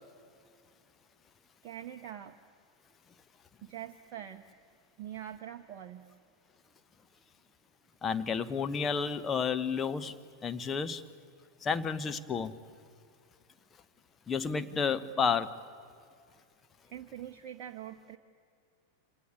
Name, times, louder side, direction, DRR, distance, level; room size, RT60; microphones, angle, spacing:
voice 1, 1.6-2.4 3.6-4.5 5.0-6.1 16.9-18.2, right 10 dB, 40° right, 5 dB, 0.9 m, -44 dB
voice 2, 8.0-10.1 10.4-11.0 11.6-12.5 14.3-15.5, left 6 dB, 20° left, 10 dB, 1.1 m, -31 dB
25.5 x 18.0 x 9.6 m, 2.3 s
figure-of-eight pair, 90°, 0 cm